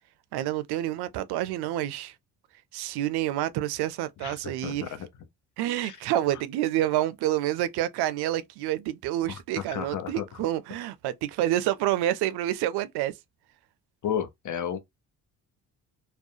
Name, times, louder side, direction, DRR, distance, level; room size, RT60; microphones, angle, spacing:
voice 1, 0.3-2.1 2.7-4.9 5.6-13.1, right 13 dB, 75° right, 0.5 m, -28 dB
voice 2, 4.2-4.9 5.8-6.0 9.3-10.3 14.0-14.8, left 9 dB, 50° left, 0.7 m, -33 dB
2.4 x 2.1 x 2.6 m
supercardioid pair, 75°, 39 cm